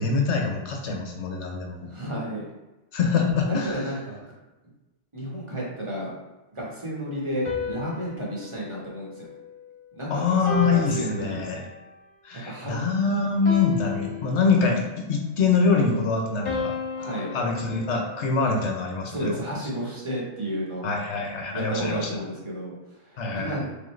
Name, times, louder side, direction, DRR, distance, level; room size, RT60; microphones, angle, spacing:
voice 1, 0.0-1.9 2.9-3.8 10.1-11.6 12.2-16.7 17.3-19.4 20.8-22.1 23.2-23.7, left 4 dB, 70° left, 2 dB, 1.0 m, -24 dB
voice 2, 1.8-2.5 3.5-4.3 5.1-6.1 6.5-9.4 9.9-10.4 10.9-11.4 12.3-12.8 17.0-17.3 18.4-18.5 19.1-20.9 21.5-23.7, right 1 dB, 25° right, -5 dB, 1.1 m, -32 dB
sound 1, 7.4-9.9 10.4-11.9 13.4-14.9 16.4-18.8, left 3 dB, 25° left, 0.9 m, -35 dB
3.7 x 3.5 x 3.1 m, 1.1 s
omnidirectional pair, 1.2 m